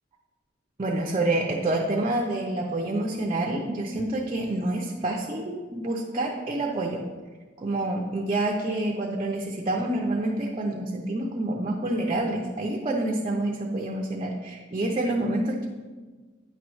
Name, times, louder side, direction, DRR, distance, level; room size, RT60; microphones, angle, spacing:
voice 1, 0.8-7.0 7.6-15.7, right 2 dB, 30° right, 0 dB, 0.6 m, -27 dB
9.1 x 3.1 x 6.2 m, 1.4 s
head